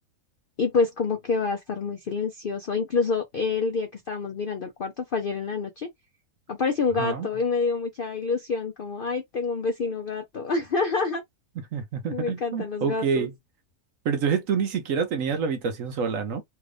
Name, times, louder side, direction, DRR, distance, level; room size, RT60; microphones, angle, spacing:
voice 1, 0.6-5.9 6.5-11.2 12.1-13.3, left 4 dB, 60° left, 0.5 m, -27 dB
voice 2, 7.0-7.3 11.7-13.3 14.0-16.4, right 6 dB, 65° right, 1.0 m, -27 dB
3.3 x 2.5 x 3.3 m
omnidirectional pair, 1.7 m